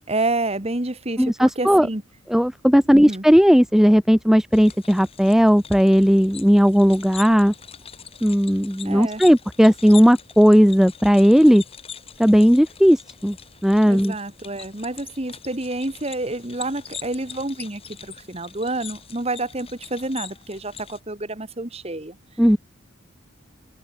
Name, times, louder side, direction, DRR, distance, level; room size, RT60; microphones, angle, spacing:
voice 1, 0.0-2.0 2.9-3.2 8.8-9.2 13.8-17.8 18.1-22.2, right 2 dB, 30° right, 1.5 m, -28 dB
voice 2, 1.2-1.9 2.3-7.5 8.2-11.6 12.2-13.4 13.6-14.1 22.4-22.6, equal, ahead, 1.1 m, -16 dB
sound 1, 4.5-21.0, left 8 dB, 25° left, 3.1 m, -42 dB
head